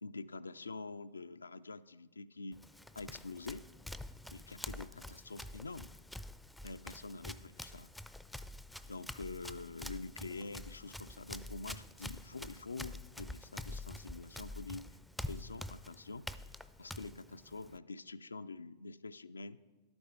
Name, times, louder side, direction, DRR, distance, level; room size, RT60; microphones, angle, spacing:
voice 1, 0.0-2.6 2.9-3.6 4.3-5.9 6.6-7.9 8.9-14.9 15.3-16.3 16.8-19.6, left 3 dB, 80° left, 14 dB, 0.3 m, -46 dB
Run, 2.5-17.8, left 1 dB, 5° left, 0.4 m, -47 dB
11.5 x 8.6 x 4.4 m, 1.3 s
figure-of-eight pair, 100°, 0 cm